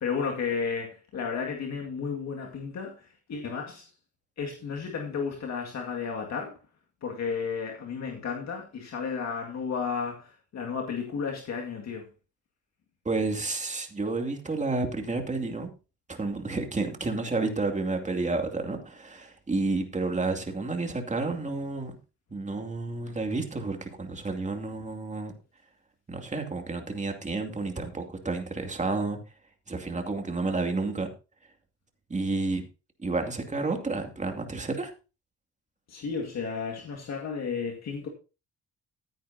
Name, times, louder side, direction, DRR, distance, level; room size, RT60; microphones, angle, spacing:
voice 1, 0.0-3.8 4.4-6.6 7.0-12.1 35.9-38.1, left 5 dB, 60° left, 2.0 m, -33 dB
voice 2, 13.0-15.7 16.1-21.9 22.3-25.3 26.1-29.2 29.7-31.1 32.1-32.6 33.0-34.9, right 3 dB, 25° right, 2.5 m, -30 dB
14.5 x 9.2 x 2.7 m
cardioid pair, 90°, 30 cm